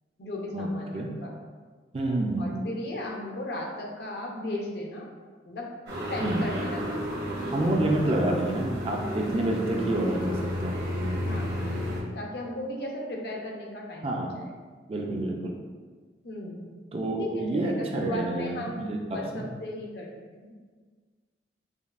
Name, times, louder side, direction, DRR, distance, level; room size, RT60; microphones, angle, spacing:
voice 1, 0.2-1.3 2.4-5.1 5.4-5.7 6.1-7.7 8.0-8.1 11.3-11.7 12.1-14.5 16.2-16.8 17.2-20.1 20.4-20.7, left 1 dB, 60° left, 0 dB, 0.6 m, -36 dB
voice 2, 1.9-2.6 6.2-6.5 7.5-10.8 14.0-14.4 14.9-15.5 16.9-19.5, right 1 dB, 30° right, 0 dB, 0.4 m, -28 dB
sound 1, 5.9-12.0, equal, 70° right, 1.1 m, -32 dB
5.1 x 2.3 x 2.4 m, 1.5 s
head